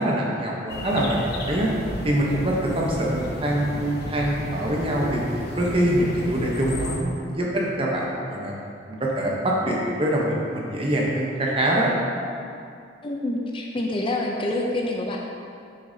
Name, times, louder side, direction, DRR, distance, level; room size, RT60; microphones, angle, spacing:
voice 1, 0.0-1.7 2.0-5.2 5.6-8.6 8.9-11.9, right 1 dB, 30° right, -3 dB, 0.9 m, -24 dB
sound 1, 0.7-7.0, left 1 dB, 60° left, 0.7 m, -33 dB
voice 2, 13.0-15.2, left 1 dB, 30° left, 0 dB, 0.5 m, -27 dB
6.6 x 6.5 x 2.7 m, 2.4 s
head